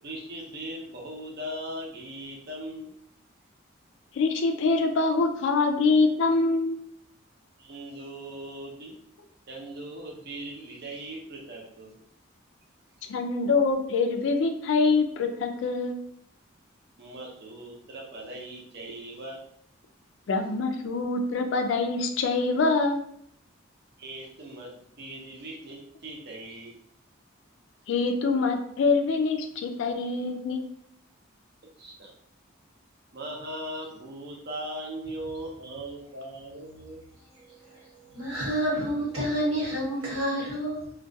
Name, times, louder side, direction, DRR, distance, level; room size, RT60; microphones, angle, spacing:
voice 1, 0.0-2.9 7.6-9.0 9.5-12.0 17.0-19.4 24.0-26.8 31.8-32.1 33.1-37.0, right 1 dB, 50° right, 0 dB, 0.6 m, -39 dB
voice 2, 4.1-6.8 13.1-16.0 20.3-23.0 27.9-30.6, left 3 dB, 65° left, 4 dB, 0.3 m, -25 dB
voice 3, 37.5-40.9, equal, 85° right, -5 dB, 1.1 m, -29 dB
2.3 x 2.2 x 2.6 m, 0.70 s
head